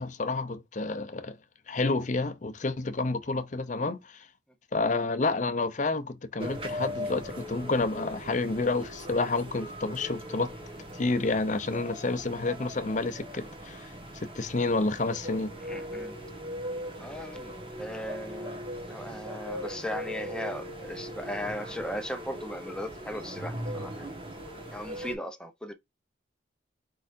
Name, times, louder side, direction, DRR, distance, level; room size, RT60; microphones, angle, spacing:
voice 1, 0.0-1.4 1.7-4.3 4.7-10.5 11.0-13.9 14.1-15.5, left 3 dB, 40° left, 0.6 m, -29 dB
sound 1, 6.4-25.1, equal, 30° right, 1.4 m, -39 dB
voice 2, 15.6-16.2 17.0-18.6 18.9-24.1 24.7-25.7, left 1 dB, 5° left, 0.7 m, -37 dB
4.8 x 4.2 x 2.6 m
head